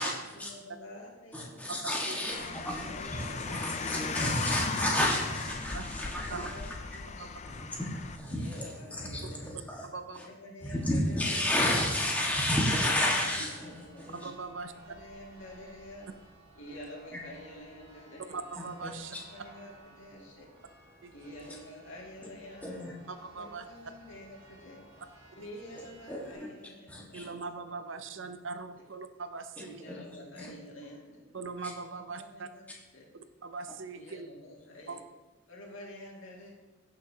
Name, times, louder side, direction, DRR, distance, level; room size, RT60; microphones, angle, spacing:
voice 1, 0.3-1.6 2.1-3.6 4.1-5.4 6.0-7.7 8.3-9.6 10.2-12.0 12.5-14.0 14.7-16.1 16.5-18.5 19.2-20.5 21.1-22.8 23.3-24.9 25.4-27.2 28.0-28.3 29.6-31.2 31.9-32.7 32.9-33.1 33.9-35.0 35.5-36.5, left 1 dB, 65° left, -2 dB, 2.3 m, -49 dB
voice 2, 1.3-6.7 7.5-9.9 10.1-10.2 10.6-14.3 18.6-19.2 22.6-22.9 26.1-26.3 26.9-27.3 29.9-30.0 30.4-30.5, left 1 dB, 5° left, -3 dB, 1.5 m, -32 dB
voice 3, 1.8-2.2 5.7-5.9 6.3-6.5 7.2-7.3 9.8-10.3 14.1-14.7 18.3-19.2 21.0-21.1 23.1-23.6 27.1-29.8 31.3-32.5 33.4-34.3 34.9-35.0, right 4 dB, 60° right, 9 dB, 0.6 m, -40 dB
Car, 2.3-8.2, left 5 dB, 35° left, 0.4 m, -37 dB
Church bell, 13.1-26.3, right 2 dB, 25° right, 2.1 m, -57 dB
16.0 x 6.3 x 2.8 m, 1.2 s
head